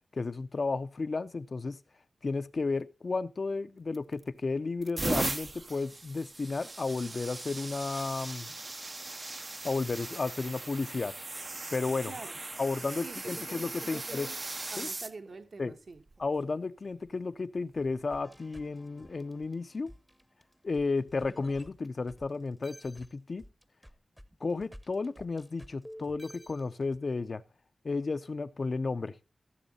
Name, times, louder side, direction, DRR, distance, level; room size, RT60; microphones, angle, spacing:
voice 1, 0.1-1.8 2.2-8.5 9.6-11.1 11.7-12.1 12.6-14.3 14.8-14.9 15.6-15.7 16.2-19.9 20.6-23.4 24.4-27.4 27.8-29.2, left 3 dB, 50° left, 0.5 m, -33 dB
sound 1, 3.9-4.3 4.8-15.1 16.0-16.2 17.8-17.9, right 2 dB, 35° right, 0.5 m, -38 dB
voice 2, 12.1-12.4 13.0-14.4 14.7-16.0, right 4 dB, 60° right, 1.1 m, -46 dB
sound 2, 18.1-22.3 22.6-27.0, equal, ahead, 0.7 m, -51 dB
15.5 x 7.3 x 4.1 m
wide cardioid pair, 105°, 0 cm